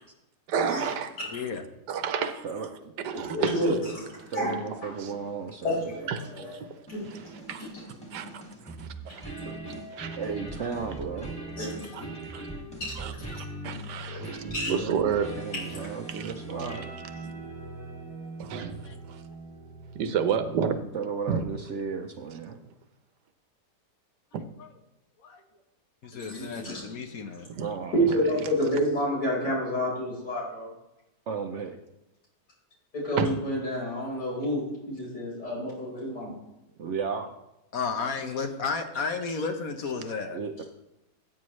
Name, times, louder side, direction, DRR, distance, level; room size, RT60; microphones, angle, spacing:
voice 1, 0.5-1.2 1.9-2.7 3.0-3.8 4.9-5.2 6.1-6.7 7.0-8.3 8.6-9.3 9.7-10.2 11.9-12.0 12.3-12.5 13.0-15.3 16.1-16.3 16.6-16.7 18.4-18.8 19.1-19.2 19.9-20.8 21.3-21.5 27.5-27.7 33.2-33.3, right 7 dB, 80° right, 1.5 m, -31 dB
voice 2, 1.3-1.6 14.3-14.4 18.8-18.9 25.2-25.4 26.0-27.5 37.7-40.4, left 5 dB, 60° left, 1.3 m, -32 dB
voice 3, 2.4-2.9 4.3-5.8 9.4-9.6 10.2-11.3 14.4-16.8 20.9-22.6 27.6-28.0 31.3-31.8 36.8-37.3 40.3-40.6, right 5 dB, 55° right, 0.8 m, -34 dB
voice 4, 3.1-4.9 5.6-6.6 6.9-7.3 10.6-10.7 11.6-12.0 12.8-13.4 14.0-14.2 14.5-14.7 15.7-15.9 26.2-26.8 27.3-27.4 27.9-30.7 32.9-36.3, equal, 75° left, 5.2 m, -30 dB
sound 1, 6.9-20.4, right 2 dB, 5° left, 2.1 m, -40 dB
14.0 x 8.6 x 3.2 m
omnidirectional pair, 1.8 m